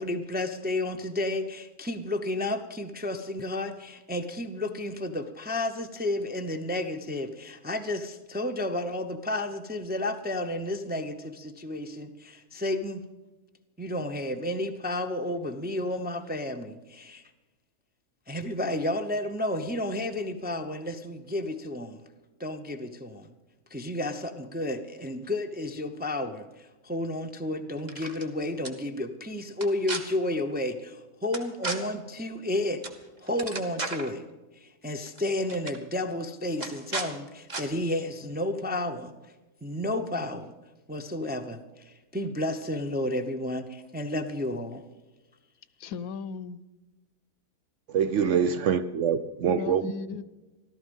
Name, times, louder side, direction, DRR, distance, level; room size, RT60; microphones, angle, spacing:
voice 1, 0.0-13.1 13.8-17.2 18.3-22.0 22.4-23.3 23.7-32.9 33.2-34.3 34.6-39.1 39.6-40.5 40.9-44.8, left 1 dB, 10° right, 5 dB, 0.4 m, -32 dB
sound 1, 27.8-28.3 28.6-28.7 29.5-30.0 31.3-31.8 32.8-33.0 33.3-34.1 35.1-35.2 35.5-35.8 36.6-37.1 37.5-37.6, right 3 dB, 30° right, 1.3 m, -34 dB
voice 2, 45.8-46.6 49.4-50.2, left 5 dB, 70° left, 16 dB, 1.0 m, -36 dB
voice 3, 47.9-49.9, right 7 dB, 65° right, 11 dB, 0.8 m, -25 dB
15.0 x 13.0 x 5.4 m, 1.1 s
omnidirectional pair, 1.6 m